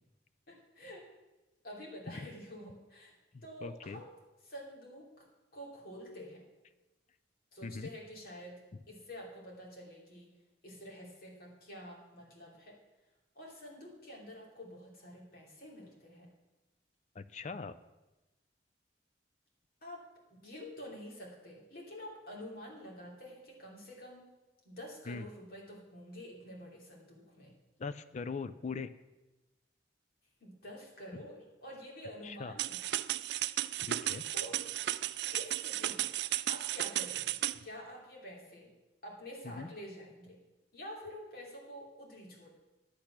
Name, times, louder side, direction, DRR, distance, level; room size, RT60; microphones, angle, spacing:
voice 1, 0.5-1.1 1.6-3.1 3.4-4.1 4.4-6.5 7.5-10.3 10.6-12.8 13.3-16.3 19.8-20.0 20.3-24.3 24.6-27.6 30.4-32.8 33.7-34.1 34.3-34.7 35.3-36.2 36.5-38.7 39.0-40.4 40.7-42.5, equal, 55° left, -2 dB, 2.9 m, -48 dB
voice 2, 3.3-4.0 7.6-7.9 17.1-17.8 25.1-25.2 27.8-28.9 31.1-31.2 32.2-32.5 33.8-34.3 39.4-39.7, left 4 dB, 40° left, 12 dB, 0.4 m, -41 dB
sound 1, 32.6-37.6, right 14 dB, 65° right, 0.3 m, -34 dB
10.5 x 8.4 x 5.9 m, 1.1 s
head